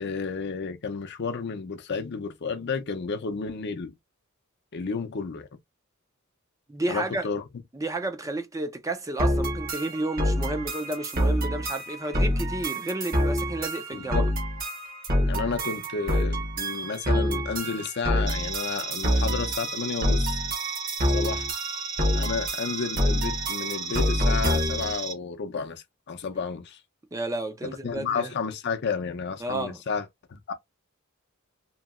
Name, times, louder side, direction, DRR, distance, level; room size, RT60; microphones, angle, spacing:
voice 1, 0.0-3.9 4.7-5.5 6.9-7.4 13.9-14.3 15.3-20.3 21.1-21.5 22.1-26.8 27.8-30.5, left 5 dB, 55° left, 0.5 m, -32 dB
voice 2, 6.7-7.3 7.7-14.3 27.1-28.3 29.4-29.8, right 2 dB, 15° right, 0.4 m, -31 dB
sound 1, 9.2-24.9, equal, 45° right, 1.0 m, -27 dB
sound 2, 18.3-25.1, right 5 dB, 60° right, 1.5 m, -35 dB
2.9 x 2.7 x 2.4 m
head